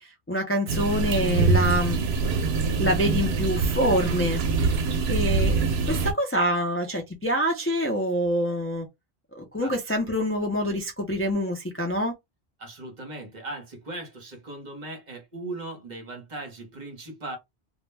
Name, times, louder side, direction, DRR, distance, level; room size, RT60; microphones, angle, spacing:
voice 1, 0.0-2.0 2.8-4.8 5.1-8.9 9.3-12.1, equal, 20° left, 0.4 m, -26 dB
sound 1, 0.7-6.1, right 4 dB, 80° right, 0.8 m, -24 dB
voice 2, 12.6-17.4, right 2 dB, 50° right, 0.9 m, -38 dB
2.2 x 2.1 x 3.2 m
omnidirectional pair, 1.1 m